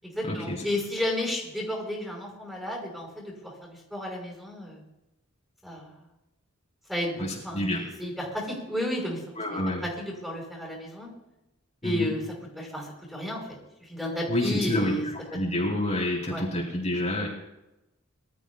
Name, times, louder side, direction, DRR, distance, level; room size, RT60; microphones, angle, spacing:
voice 1, 0.0-4.8 5.6-5.9 6.9-9.2 9.5-11.1 11.8-12.2 12.6-13.4 13.9-15.0 16.3-16.4, left 1 dB, ahead, -2 dB, 5.5 m, -32 dB
voice 2, 7.2-7.8 9.4-9.8 11.8-12.1 14.3-14.9 15.3-17.3, left 1 dB, 35° left, -5 dB, 3.9 m, -28 dB
24.5 x 13.5 x 2.4 m, 0.93 s
head